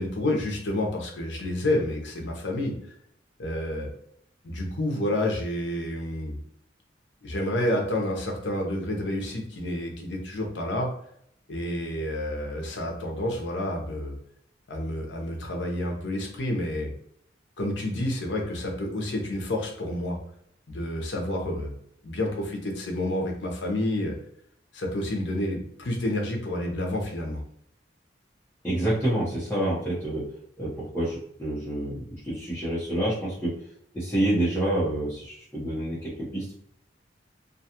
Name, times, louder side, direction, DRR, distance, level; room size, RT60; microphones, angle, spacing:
voice 1, 0.0-2.8 3.4-3.9 4.4-6.4 7.2-10.9 11.5-14.2 14.7-16.9 17.6-20.2 20.7-21.7 22.0-24.1 24.7-27.4, left 1 dB, 75° left, 1 dB, 0.7 m, -29 dB
voice 2, 28.6-30.3 30.6-32.0 32.2-33.6 33.9-36.5, right 1 dB, 10° left, -11 dB, 0.8 m, -28 dB
2.5 x 2.3 x 2.8 m, 0.68 s
head